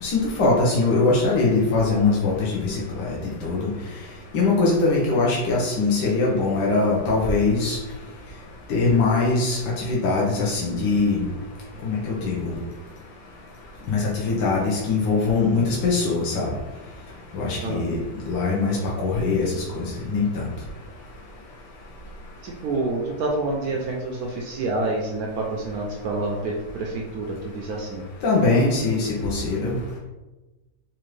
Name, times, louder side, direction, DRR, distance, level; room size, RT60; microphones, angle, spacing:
voice 1, 0.0-3.2 3.4-3.7 4.3-7.8 8.7-9.6 9.9-11.2 11.8-12.6 13.9-16.5 17.3-18.0 18.3-20.4 28.2-29.8, left 3 dB, 75° left, -4 dB, 1.3 m, -22 dB
voice 2, 22.4-28.1, right 2 dB, 70° right, 0 dB, 0.9 m, -28 dB
4.3 x 2.5 x 3.1 m, 1.1 s
omnidirectional pair, 1.9 m